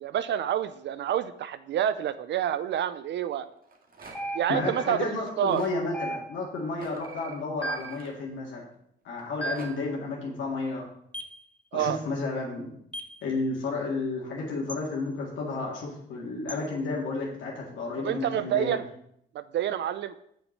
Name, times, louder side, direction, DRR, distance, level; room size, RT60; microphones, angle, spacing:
voice 1, 0.0-3.5 4.3-5.6 11.7-12.0 18.0-18.8 19.3-20.1, right 10 dB, 65° right, 13 dB, 0.5 m, -28 dB
Rattle, 3.5-4.4 5.2-5.8 6.7-8.7 9.2-9.7, right 3 dB, 45° right, 1.8 m, -49 dB
sound 1, 4.0-4.4 4.6-5.0 7.0-7.3 7.6-7.9, right 6 dB, 15° right, 1.4 m, -48 dB
sound 2, 4.2-4.8 5.9-6.6 7.6-8.0 9.4-9.8 11.1-11.4 12.9-13.2 14.7-14.9 16.5-16.7, right 1 dB, 5° left, 0.6 m, -36 dB
voice 2, 4.5-8.6 9.0-10.8 11.7-12.7 13.2-18.8, left 3 dB, 75° left, -3 dB, 2.1 m, -32 dB
6.5 x 6.2 x 6.5 m, 0.73 s
cardioid pair, 90°, 20 cm